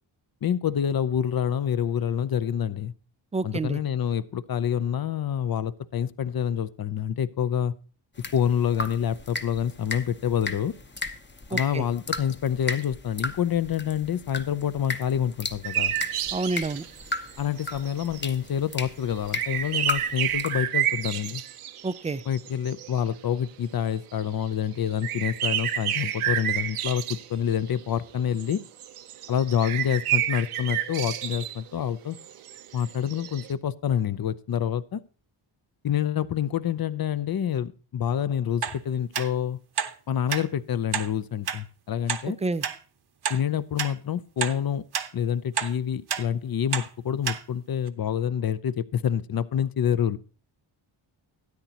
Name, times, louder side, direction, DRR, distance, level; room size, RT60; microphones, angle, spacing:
voice 1, 0.4-2.9 3.4-7.7 8.3-10.7 11.5-15.9 17.4-21.4 22.3-28.6 29.3-32.2 32.7-35.0 35.8-39.6 40.1-42.4 43.3-44.8 45.1-50.2, left 9 dB, 45° left, 0.6 m, -27 dB
voice 2, 3.3-3.8 11.5-11.8 16.3-16.8 21.8-22.2 42.4-42.6, right 3 dB, 15° right, 0.4 m, -28 dB
sound 1, 8.2-20.6, left 3 dB, 20° left, 0.8 m, -36 dB
sound 2, 15.6-18.2 19.1-23.4 23.8-24.2 24.5-33.5, right 10 dB, 80° right, 0.8 m, -30 dB
sound 3, 38.6-38.8 39.1-39.3 39.8-39.9 40.3-40.4 40.9-41.1 41.5-41.6 42.1-42.2 42.6-42.8 43.3-43.4 43.8-43.9 44.4-44.6 44.9-45.1 45.6-45.7 46.1-46.2 46.7-46.9 47.3-47.4 47.9-48.0, right 7 dB, 50° right, 0.9 m, -29 dB
13.0 x 9.1 x 2.9 m
cardioid pair, 60°, 50 cm